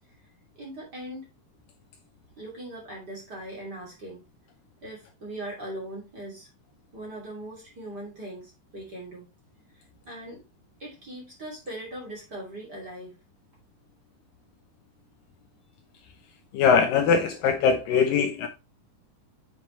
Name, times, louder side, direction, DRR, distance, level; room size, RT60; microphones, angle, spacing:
voice 1, 0.5-1.3 2.4-4.2 4.8-6.5 6.9-9.3 9.7-10.4 10.8-13.2, right 1 dB, 30° right, 2.9 m, -40 dB
voice 2, 16.5-18.5, left 6 dB, 75° left, 2.3 m, -21 dB
7.9 x 5.9 x 3.2 m
omnidirectional pair, 4.4 m